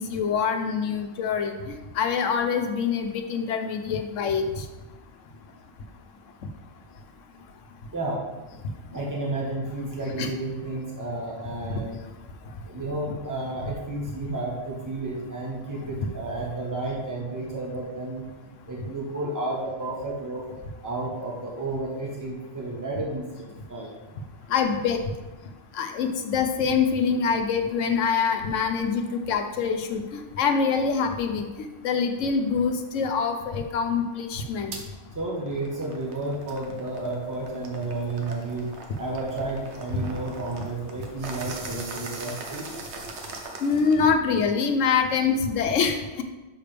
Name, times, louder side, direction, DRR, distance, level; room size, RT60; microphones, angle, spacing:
voice 1, 0.0-4.6 10.2-10.3 24.5-25.0 25.7-34.8 43.6-46.2, left 6 dB, 85° left, 6 dB, 1.1 m, -25 dB
voice 2, 7.9-8.2 8.9-12.0 12.6-18.3 18.6-20.5 20.8-23.3 23.7-23.9 35.1-42.7, right 2 dB, 15° right, -4 dB, 1.3 m, -31 dB
sound 1, 34.7-34.9 35.4-44.2, right 3 dB, 65° right, 1.1 m, -41 dB
6.6 x 6.0 x 3.4 m, 1.1 s
omnidirectional pair, 1.3 m